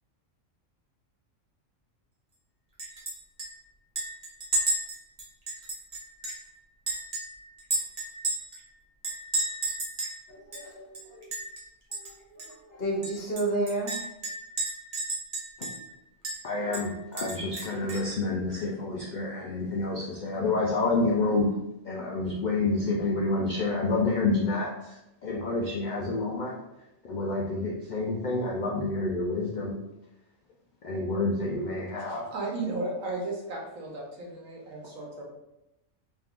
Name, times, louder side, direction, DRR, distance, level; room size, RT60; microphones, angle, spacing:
Chink clink, 2.8-3.1 3.4-3.5 4.0-6.5 6.9-8.6 9.0-10.2 10.5-10.6 10.9-11.6 11.9-12.1 12.4-12.5 13.0-15.9 16.2-16.4 16.7-18.1, right 2 dB, 35° right, 0.8 m, -32 dB
voice 1, 10.3-11.2 11.9-14.0, right 2 dB, 50° left, -5 dB, 1.2 m, -32 dB
voice 2, 16.4-21.5 21.8-25.0 25.2-26.5 27.0-29.8 30.8-32.3, left 3 dB, 75° left, -2 dB, 0.4 m, -28 dB
voice 3, 32.1-35.2, right 2 dB, 85° right, -2 dB, 1.2 m, -35 dB
3.4 x 3.0 x 2.4 m, 0.89 s
omnidirectional pair, 1.4 m